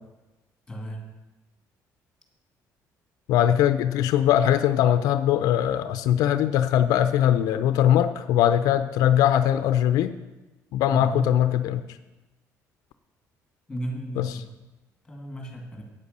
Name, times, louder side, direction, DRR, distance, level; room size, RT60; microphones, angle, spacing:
voice 1, 0.7-1.0 10.9-11.3 13.7-14.4 15.1-15.8, equal, 5° left, 1 dB, 2.2 m, -33 dB
voice 2, 3.3-10.1 10.7-11.8 14.2-14.4, left 11 dB, 85° left, 11 dB, 0.5 m, -21 dB
8.8 x 8.3 x 6.6 m, 1.1 s
cardioid pair, 165°, 6 cm